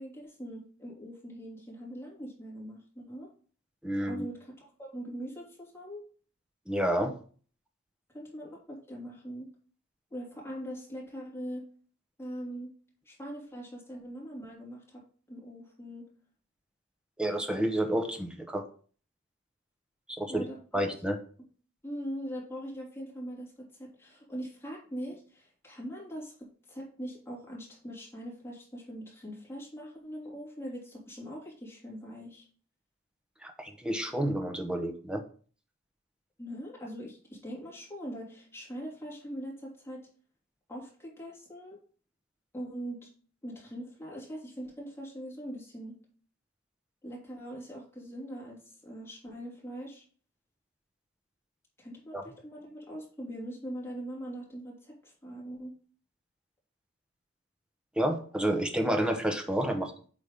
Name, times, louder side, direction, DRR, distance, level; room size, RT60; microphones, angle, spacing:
voice 1, 0.0-3.3 4.0-6.0 8.1-9.5 10.1-11.6 12.2-12.7 13.1-15.0 15.3-16.0 20.3-20.6 21.8-23.5 23.8-26.3 26.7-32.5 36.4-40.0 40.7-41.8 42.5-43.1 43.4-45.9 47.0-50.0 51.8-55.7, equal, 15° left, -5 dB, 3.1 m, -41 dB
voice 2, 3.8-4.3 6.7-7.1 17.2-18.6 20.1-20.4 20.7-21.2 33.4-35.2 52.1-52.2 58.0-59.9, right 1 dB, 5° right, 6 dB, 0.8 m, -30 dB
8.2 x 3.5 x 5.1 m, 0.42 s
head